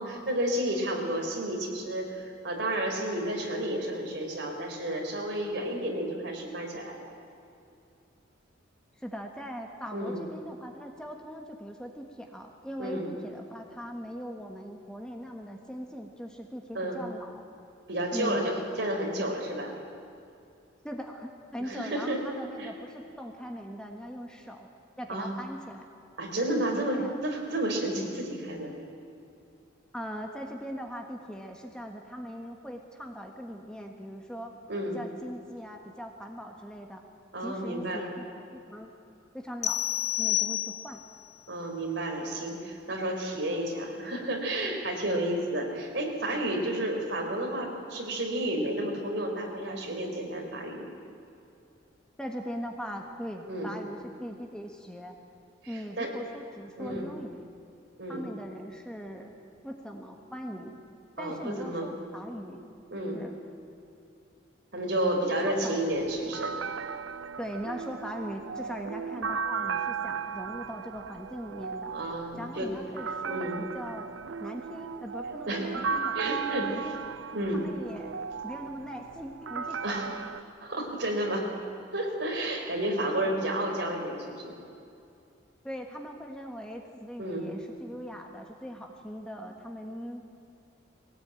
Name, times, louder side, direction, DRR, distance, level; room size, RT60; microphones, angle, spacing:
voice 1, 0.0-7.1 9.9-10.2 12.8-13.1 16.7-17.0 17.9-19.7 21.6-22.2 22.6-22.7 25.1-25.3 26.2-28.7 34.7-35.0 37.3-38.1 41.5-50.8 53.5-53.7 55.6-56.1 56.8-57.1 58.0-58.2 61.2-61.9 62.9-63.2 64.7-66.5 71.9-72.7 73.3-73.6 75.5-75.7 76.1-76.9 77.3-77.7 79.8-80.2 80.6-81.5 81.9-84.6 87.2-87.5, right 1 dB, 60° right, 2 dB, 3.8 m, -31 dB
voice 2, 9.0-17.4 18.1-18.5 20.8-24.7 25.0-25.9 26.5-27.1 29.9-34.5 34.9-37.0 37.4-38.9 39.3-39.8 40.2-41.0 46.5-46.8 52.2-55.2 55.7-57.4 58.1-59.3 59.6-60.8 61.2-62.7 63.1-63.3 65.4-65.8 67.4-71.9 72.4-74.1 74.4-77.0 77.5-78.1 78.4-80.2 85.6-90.2, equal, 5° left, 2 dB, 1.4 m, -40 dB
sound 1, 39.6-41.2, left 14 dB, 35° left, 1.3 m, -29 dB
sound 2, 65.9-80.4, right 6 dB, 75° right, 0.5 m, -36 dB
21.0 x 18.0 x 9.0 m, 2.6 s
head